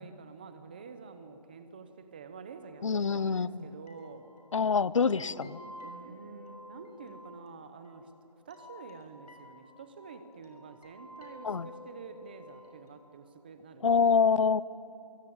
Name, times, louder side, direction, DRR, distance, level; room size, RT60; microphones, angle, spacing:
voice 1, 0.0-4.3 5.1-5.6 5.8-8.1 8.5-14.1, right 5 dB, 15° right, 9 dB, 0.8 m, -48 dB
voice 2, 2.8-3.7 4.5-5.5 11.4-11.7 13.8-14.6, left 5 dB, 50° left, 20 dB, 0.7 m, -25 dB
sound 1, 3.6-3.7 3.9-13.0, left 2 dB, 85° left, 5.9 m, -52 dB
25.5 x 22.5 x 8.7 m, 2.8 s
hypercardioid pair, 175°, 20 cm